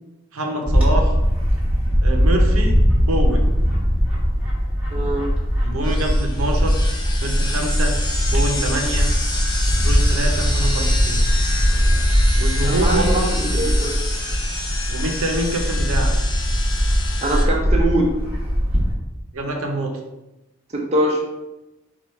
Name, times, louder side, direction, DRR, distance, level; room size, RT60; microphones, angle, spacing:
voice 1, 0.3-1.1 2.0-2.8 3.0-3.5 5.6-6.8 7.2-7.9 8.3-9.1 9.7-11.2 12.4-13.1 13.4-13.7 14.9-16.1 19.3-20.0, right 1 dB, 80° right, 3 dB, 0.7 m, -25 dB
Bird / Wind, 0.7-18.9, equal, 5° right, 1.1 m, -20 dB
voice 2, 4.9-5.3 12.6-14.0 17.2-18.1 20.7-21.2, right 1 dB, 30° right, -1 dB, 0.6 m, -22 dB
sound 1, 5.8-17.4, left 2 dB, 20° left, 0.5 m, -29 dB
4.5 x 2.4 x 4.4 m, 0.98 s
head